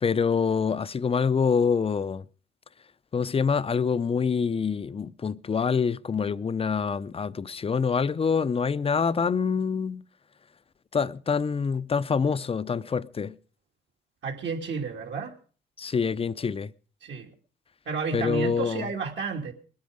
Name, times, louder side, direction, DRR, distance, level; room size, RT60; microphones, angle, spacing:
voice 1, 0.0-2.3 3.1-10.0 10.9-13.3 15.8-16.7 18.1-18.9, left 6 dB, 30° left, 0.6 m, -26 dB
voice 2, 14.2-15.3 17.0-17.3 17.9-19.5, right 5 dB, 65° right, 2.9 m, -31 dB
21.0 x 9.6 x 5.0 m
cardioid pair, 90°, 20 cm